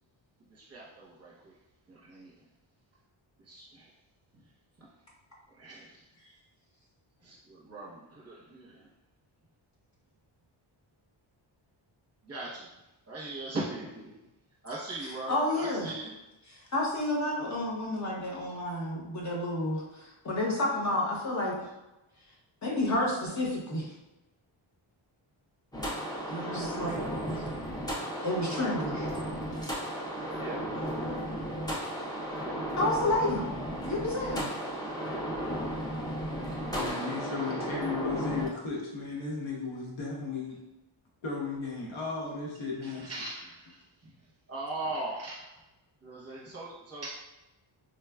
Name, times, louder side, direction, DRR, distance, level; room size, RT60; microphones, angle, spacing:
voice 1, 0.5-1.5 1.9-2.3 3.4-3.9 5.5-6.4 7.2-8.9 12.2-12.7 13.1-14.1 14.6-16.1 30.2-30.9 42.8-44.1 44.5-45.6 46.0-47.2, right 2 dB, 30° right, -6 dB, 0.8 m, -40 dB
voice 2, 15.3-15.9 16.5-21.7 22.6-23.9 26.3-27.0 28.2-29.1 32.8-33.5 33.8-34.5, left 1 dB, 35° left, -3 dB, 0.7 m, -30 dB
sound 1, 25.7-38.5, equal, 10° left, 0.3 m, -34 dB
voice 3, 36.5-40.6 41.2-43.1, left 4 dB, 80° left, -2 dB, 0.9 m, -35 dB
3.8 x 2.3 x 2.2 m, 0.99 s
wide cardioid pair, 160°, 48 cm